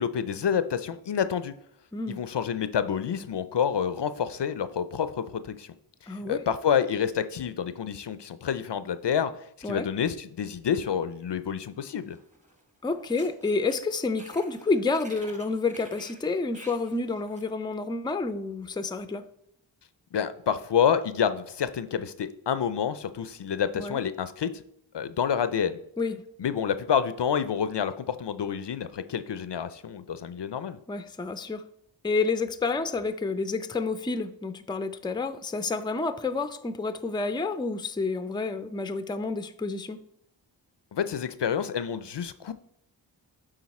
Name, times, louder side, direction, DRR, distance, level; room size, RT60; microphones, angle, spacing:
voice 1, 0.0-1.5 2.1-5.7 6.0-9.3 9.6-12.2 20.1-24.5 24.9-25.8 26.4-30.8 40.9-42.5, left 8 dB, 60° left, 12 dB, 0.5 m, -28 dB
voice 2, 6.1-6.4 9.6-9.9 12.8-19.2 23.8-24.0 26.0-26.3 30.9-31.6 32.0-40.0, left 3 dB, 10° left, 11 dB, 0.4 m, -29 dB
sound 1, 12.1-12.6 12.9-17.5, right 1 dB, 15° right, 1.2 m, -49 dB
8.8 x 3.9 x 4.2 m, 0.72 s
wide cardioid pair, 45°, 47 cm